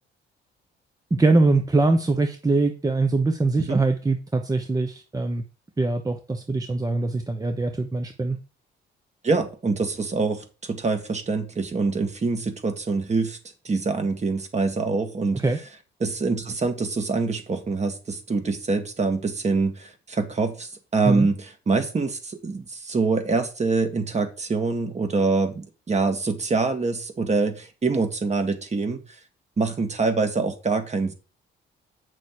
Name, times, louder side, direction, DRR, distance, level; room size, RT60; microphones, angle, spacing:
voice 1, 1.1-5.4 5.8-8.4 15.3-15.6 21.1-21.3, right 3 dB, 20° right, 6 dB, 1.0 m, -22 dB
voice 2, 9.2-13.4 13.6-15.4 16.0-29.0 29.6-31.1, right 4 dB, 35° right, 6 dB, 2.0 m, -25 dB
8.3 x 6.1 x 4.5 m, 0.34 s
cardioid pair, 90°, 20 cm